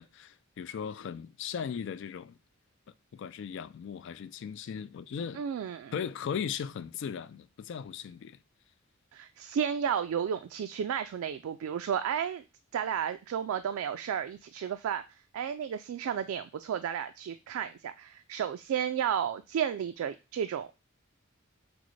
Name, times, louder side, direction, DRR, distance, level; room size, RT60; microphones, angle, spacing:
voice 1, 0.0-2.4 3.1-5.4 5.9-8.4, left 7 dB, 60° left, 0.3 m, -37 dB
voice 2, 5.3-5.9 9.1-12.4 12.7-20.7, right 8 dB, 90° right, 0.3 m, -32 dB
6.0 x 2.1 x 3.1 m
head